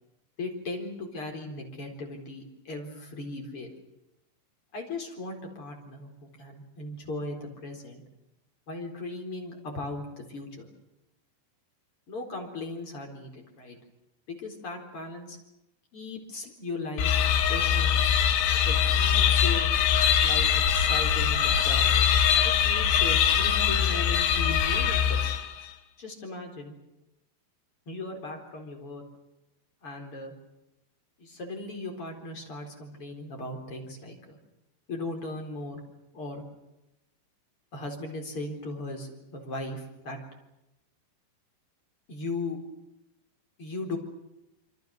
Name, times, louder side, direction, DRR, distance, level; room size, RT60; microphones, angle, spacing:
voice 1, 0.4-3.7 4.7-8.0 8.7-10.7 12.1-13.8 14.3-15.4 15.9-17.2 17.5-18.0 18.6-19.7 20.2-22.0 22.3-25.2 26.0-26.8 27.9-29.0 29.8-30.3 31.2-34.4 34.9-35.8 36.1-36.4 37.7-40.2 42.1-42.6 43.6-44.0, left 2 dB, 30° left, 2 dB, 4.6 m, -37 dB
sound 1, 17.0-25.7, left 8 dB, 70° left, 3.3 m, -23 dB
26.5 x 25.0 x 6.6 m, 0.90 s
omnidirectional pair, 5.4 m